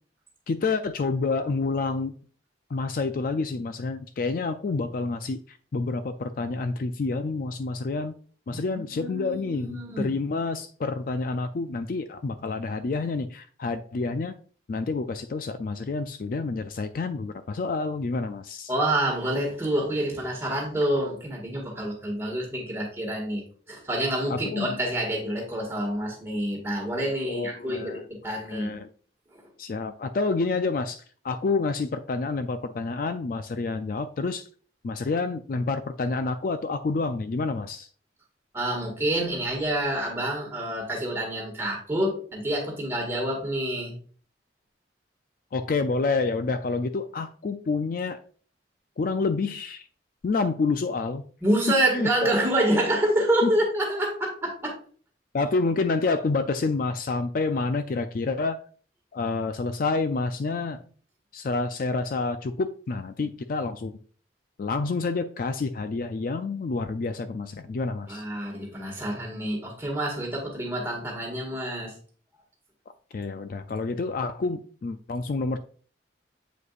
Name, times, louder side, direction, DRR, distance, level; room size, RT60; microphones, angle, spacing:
voice 1, 0.5-2.1 2.7-8.2 8.5-14.3 14.7-18.7 24.3-24.7 27.2-28.0 28.5-28.9 29.6-34.5 34.8-37.9 45.5-48.2 49.0-49.8 50.2-51.2 51.9-52.3 53.4-53.5 55.3-58.6 59.1-60.8 61.3-63.9 64.6-68.2 73.1-75.6, left 3 dB, 50° left, 0.3 m, -28 dB
voice 2, 8.5-10.1 18.7-23.4 23.7-28.7 29.3-29.4 38.5-43.9 51.4-54.7 60.7-60.8 68.1-71.9, right 1 dB, 15° right, 1.8 m, -27 dB
8.0 x 4.9 x 2.5 m
head